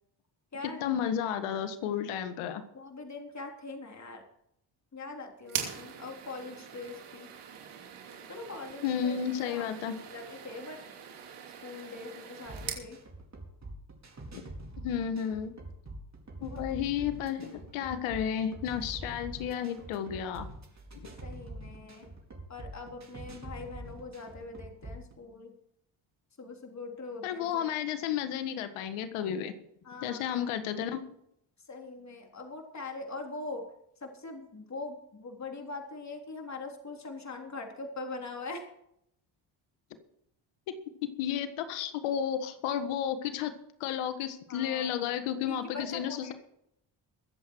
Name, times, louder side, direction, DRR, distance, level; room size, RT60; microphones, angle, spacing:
voice 1, 0.6-2.6 8.8-10.0 14.3-14.4 14.8-15.5 16.4-20.5 20.9-21.1 27.2-29.5 30.0-31.0 41.2-43.5 43.8-46.3, left 9 dB, 85° left, 10 dB, 1.6 m, -32 dB
voice 2, 2.7-4.2 4.9-7.3 8.3-9.2 9.5-9.7 10.0-10.8 11.6-13.0 16.4-16.6 21.2-22.1 22.5-25.5 26.4-27.7 29.8-30.4 31.7-33.6 34.0-38.6 44.5-44.9 45.5-46.3, left 3 dB, 35° left, 2 dB, 3.6 m, -42 dB
sound 1, 5.5-12.9, right 8 dB, 80° right, 2.9 m, -42 dB
sound 2, 12.4-25.1, right 1 dB, 35° right, 4.4 m, -45 dB
22.5 x 7.9 x 4.6 m, 0.76 s
supercardioid pair, 65°, 49 cm